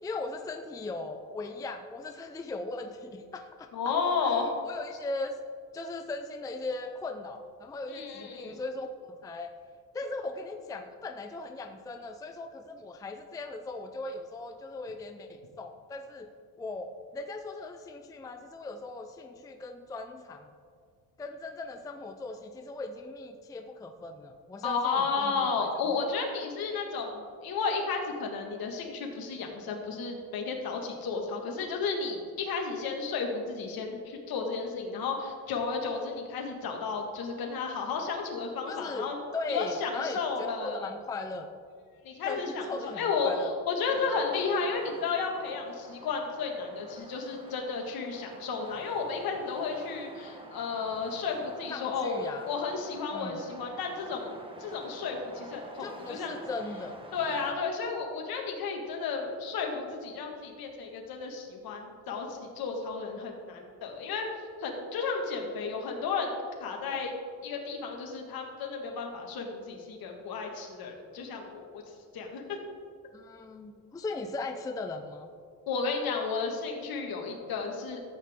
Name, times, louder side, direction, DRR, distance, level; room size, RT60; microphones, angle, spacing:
voice 1, 0.0-3.7 4.2-5.4 5.7-9.5 9.9-16.3 16.6-20.5 21.2-26.0 38.7-40.2 40.6-41.6 42.2-43.5 51.7-52.5 53.1-53.4 55.8-57.0 66.9-67.0 73.1-75.3, left 3 dB, 10° left, 5 dB, 0.4 m, -38 dB
voice 2, 3.7-4.5 7.9-8.6 24.6-39.2 39.5-40.9 42.0-54.3 54.6-56.4 57.1-64.3 64.6-67.1 67.4-71.8 72.1-72.6 75.7-78.0, left 4 dB, 65° left, 1 dB, 1.8 m, -33 dB
sound 1, 43.8-57.5, right 1 dB, 15° right, 1.1 m, -49 dB
13.5 x 8.2 x 3.6 m, 2.1 s
cardioid pair, 130°, 38 cm